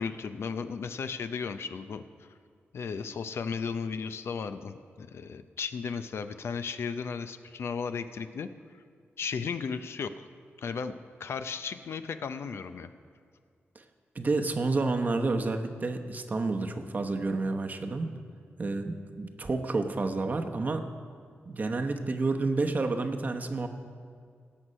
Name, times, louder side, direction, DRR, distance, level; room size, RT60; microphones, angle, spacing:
voice 1, 0.0-2.3 2.7-8.5 9.2-10.3 10.6-12.9, left 5 dB, 70° left, 10 dB, 0.5 m, -35 dB
voice 2, 14.1-18.1 18.6-20.9 21.5-23.7, right 3 dB, 40° right, 6 dB, 0.9 m, -29 dB
17.5 x 6.3 x 5.4 m, 2.1 s
cardioid pair, 90°, 4 cm